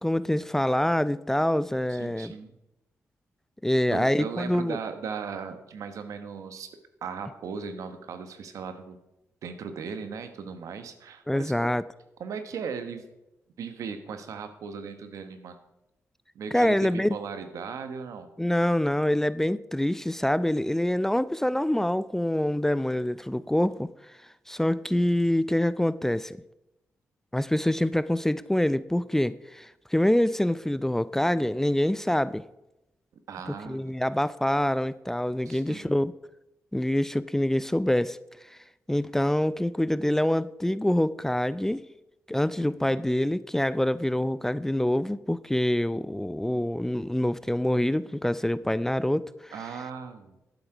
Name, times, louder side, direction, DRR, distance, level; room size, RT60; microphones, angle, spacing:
voice 1, 0.0-2.3 3.6-4.8 11.3-11.8 16.5-17.2 18.4-23.9 24.5-26.4 27.3-32.5 33.7-36.1 36.7-38.2 38.5-38.6 38.9-41.8 42.3-49.5, left 1 dB, 5° left, 0.4 m, -25 dB
voice 2, 1.9-2.6 3.9-6.7 7.0-9.0 9.4-11.7 12.2-13.1 13.6-15.6 16.3-18.3 33.3-33.9 35.4-36.0 42.6-43.0 49.5-50.3, right 6 dB, 85° right, 1.2 m, -37 dB
11.5 x 8.1 x 4.9 m
cardioid pair, 70°, 5 cm